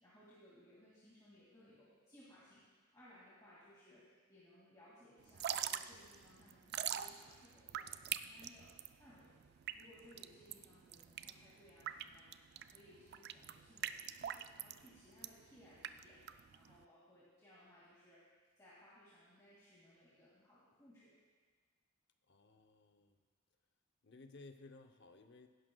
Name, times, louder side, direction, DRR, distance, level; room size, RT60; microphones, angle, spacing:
voice 1, 0.0-9.5 9.7-18.2 18.6-21.2, left 1 dB, 20° left, -9 dB, 2.3 m, -63 dB
Drip / Trickle dribble, 5.2-16.8, right 10 dB, 50° right, 0.3 m, -44 dB
voice 2, 22.3-23.2 24.0-25.5, left 3 dB, 55° left, 6 dB, 0.7 m, -58 dB
16.5 x 11.0 x 2.3 m, 1.5 s
head